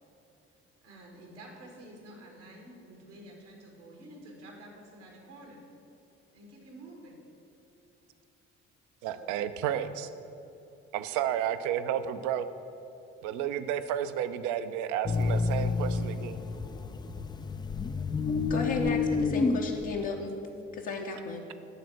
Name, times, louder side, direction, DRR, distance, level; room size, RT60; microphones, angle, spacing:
voice 1, 0.8-5.6 6.3-7.2 9.0-9.8, right 1 dB, 80° right, 0 dB, 1.9 m, -50 dB
voice 2, 9.0-10.1 10.9-12.4 13.2-16.4, right 10 dB, 60° right, 11 dB, 0.6 m, -31 dB
sound 1, 15.0-20.1, left 4 dB, 15° left, 0.3 m, -29 dB
voice 3, 18.5-20.4 20.7-21.4, left 4 dB, 60° left, -1 dB, 0.9 m, -34 dB
12.5 x 4.2 x 7.7 m, 3.0 s
figure-of-eight pair, 50°, 35 cm